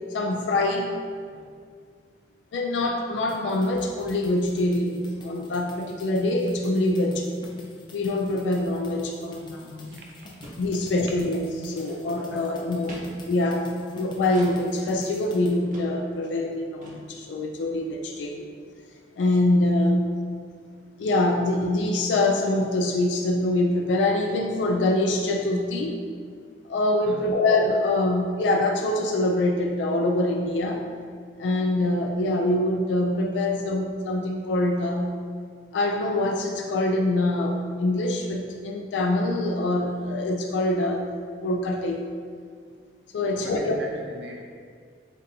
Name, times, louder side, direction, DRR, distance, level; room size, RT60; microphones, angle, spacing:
voice 1, 0.1-0.9 2.5-7.3 7.9-10.0 10.6-13.0 13.3-18.5 19.2-20.1 21.0-26.0 26.7-30.9 31.4-35.2 35.7-41.1 41.4-42.1 43.1-43.8, left 2 dB, 80° left, 2 dB, 0.3 m, -24 dB
sound 1, 3.3-15.6, left 1 dB, 25° left, 0.5 m, -46 dB
sound 2, 9.7-9.8 10.0-10.1 10.4-10.6 11.0-11.2 11.6-12.2 12.9-13.0 14.3-14.5 15.1-15.2 15.7-15.9 16.2-16.3 16.4-16.6 16.8-17.0, equal, 45° right, 0.9 m, -43 dB
voice 2, 9.8-10.5 27.0-27.4 43.2-44.4, equal, 80° right, -1 dB, 0.6 m, -42 dB
7.5 x 2.6 x 2.7 m, 2.1 s
head